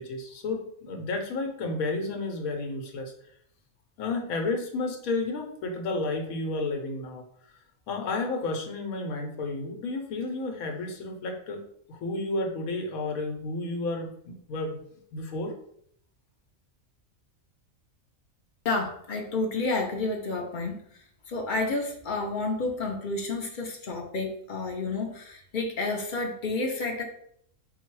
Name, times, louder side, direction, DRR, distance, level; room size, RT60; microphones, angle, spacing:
voice 1, 0.0-3.1 4.0-7.2 7.9-11.6 11.9-14.8 15.1-15.5, left 2 dB, 90° left, 3 dB, 1.2 m, -31 dB
voice 2, 18.6-27.0, left 3 dB, 50° left, 2 dB, 0.6 m, -30 dB
3.9 x 2.3 x 4.5 m, 0.67 s
omnidirectional pair, 1.4 m